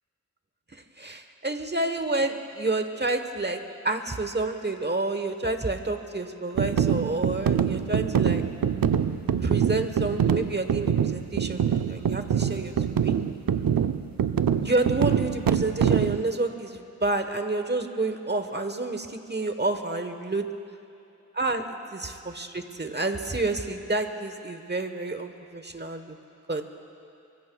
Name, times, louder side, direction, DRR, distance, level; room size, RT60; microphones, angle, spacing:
voice 1, 1.0-8.4 9.4-12.7 13.0-13.2 14.6-20.5 21.4-26.1 26.5-26.6, right 2 dB, 30° right, 7 dB, 1.2 m, -29 dB
sound 1, 6.6-16.2, right 8 dB, 80° right, 0.6 m, -24 dB
24.5 x 24.0 x 2.3 m, 2.8 s
wide cardioid pair, 60°, 34 cm